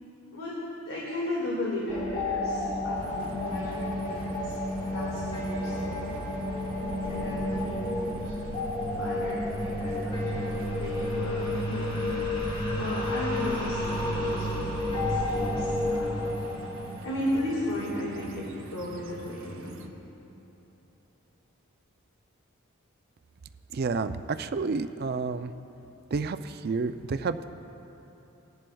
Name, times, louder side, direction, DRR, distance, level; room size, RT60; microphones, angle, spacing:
voice 1, 0.9-4.6 4.9-6.2 7.1-8.3 8.9-12.1 12.8-16.4 17.0-19.7, left 1 dB, 70° left, -6 dB, 1.9 m, -35 dB
sound 1, 1.9-18.1, left 1 dB, 20° left, 1.0 m, -31 dB
sound 2, 3.0-19.9, right 1 dB, 60° right, 0.7 m, -44 dB
voice 2, 23.7-25.5 26.1-27.4, right 4 dB, 45° right, 10 dB, 0.3 m, -30 dB
19.5 x 11.0 x 2.3 m, 3.0 s
head